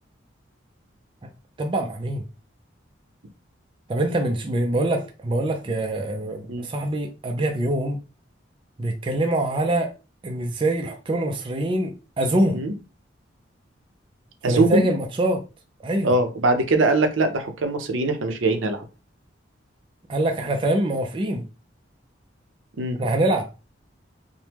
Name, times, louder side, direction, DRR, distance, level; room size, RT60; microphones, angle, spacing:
voice 1, 1.6-2.2 3.9-8.0 8.8-9.9 10.2-12.6 14.5-15.4 15.8-16.1 20.1-21.4 23.0-23.5, right 1 dB, 25° right, 0.4 m, -24 dB
voice 2, 14.4-14.9 16.0-18.8 22.8-23.0, right 2 dB, 80° right, 0.6 m, -22 dB
3.3 x 2.1 x 2.9 m
head